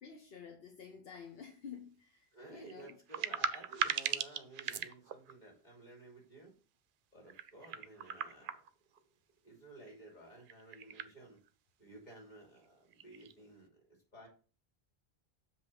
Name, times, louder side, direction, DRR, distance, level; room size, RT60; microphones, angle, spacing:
voice 1, 0.0-3.0, left 7 dB, 75° left, 1.0 m, -51 dB
sound 1, 1.1-1.2 2.6-5.3 7.3-9.0 10.4-11.1 11.5-11.6 12.6-12.7 12.9-13.3, right 8 dB, 65° right, 0.6 m, -39 dB
voice 2, 2.3-6.5 7.1-8.6 9.4-11.4 11.8-14.3, right 2 dB, 45° left, 3.0 m, -54 dB
7.5 x 3.2 x 5.7 m
omnidirectional pair, 1.0 m